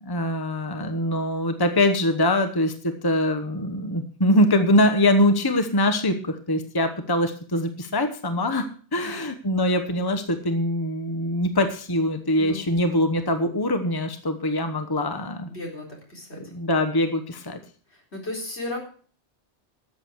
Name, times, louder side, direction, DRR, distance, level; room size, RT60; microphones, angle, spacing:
voice 1, 0.0-8.7 8.9-15.5 16.4-17.6, left 1 dB, 20° left, 7 dB, 1.1 m, -23 dB
voice 2, 15.5-16.4 17.9-18.8, left 2 dB, 75° left, -1 dB, 4.4 m, -35 dB
13.0 x 7.5 x 6.3 m, 0.43 s
omnidirectional pair, 1.1 m